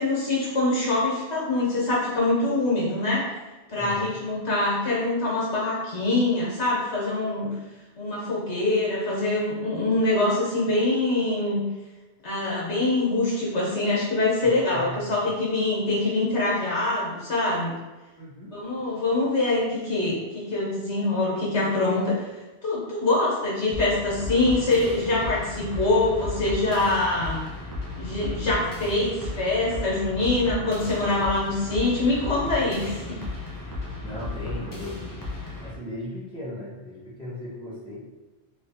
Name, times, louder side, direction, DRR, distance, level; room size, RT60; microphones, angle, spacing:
voice 1, 0.0-3.3 3.7-7.5 8.0-11.6 12.2-17.8 18.5-22.1 22.6-27.4 28.0-33.2, left 2 dB, 85° left, -6 dB, 1.6 m, -24 dB
voice 2, 3.8-4.1 14.4-15.1 18.2-18.6 34.0-35.2 35.6-38.1, left 1 dB, 5° left, -9 dB, 1.1 m, -37 dB
sound 1, 23.7-35.7, left 2 dB, 25° left, 0.5 m, -35 dB
3.5 x 3.1 x 2.7 m, 1.1 s
omnidirectional pair, 1.1 m